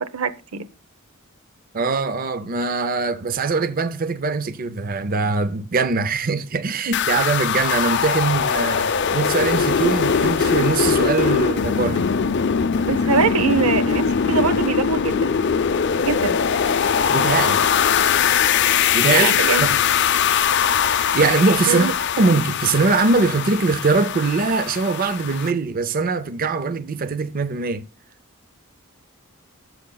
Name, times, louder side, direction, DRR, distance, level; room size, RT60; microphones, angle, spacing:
voice 1, 0.0-0.7 12.8-15.3 16.0-16.4 19.1-19.7 21.6-21.9, right 6 dB, 85° right, 0.8 m, -23 dB
voice 2, 1.7-12.1 17.1-17.6 18.9-19.8 21.1-21.9 22.2-27.8, right 4 dB, 40° right, 0.5 m, -22 dB
sound 1, 6.9-25.5, left 7 dB, 55° left, 0.5 m, -21 dB
17.0 x 7.5 x 2.3 m
head